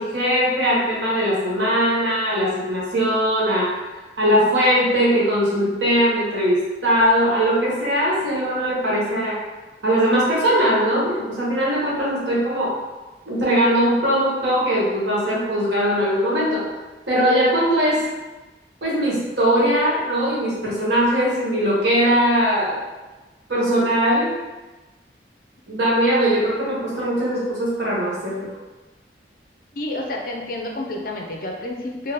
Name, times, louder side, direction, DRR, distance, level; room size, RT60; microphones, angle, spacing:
voice 1, 0.0-3.7 4.2-9.4 9.8-12.8 13.3-16.6 17.1-18.1 18.8-22.9 23.5-24.4 25.7-28.5, equal, 85° right, -6 dB, 1.3 m, -20 dB
voice 2, 29.7-32.1, left 1 dB, 50° left, 1 dB, 0.5 m, -29 dB
4.0 x 2.2 x 3.3 m, 1.2 s
head